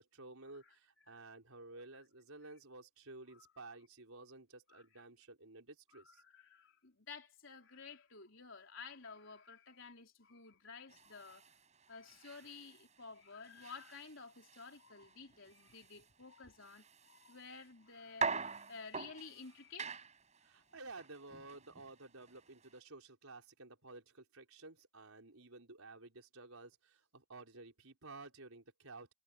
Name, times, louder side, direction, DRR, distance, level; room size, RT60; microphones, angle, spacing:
voice 1, 0.0-6.2 20.4-29.1, right 3 dB, 85° right, 4.7 m, -53 dB
voice 2, 5.9-11.6 11.9-20.0, left 5 dB, 65° left, 4.2 m, -53 dB
sound 1, 10.9-22.8, right 5 dB, 35° right, 5.4 m, -46 dB
head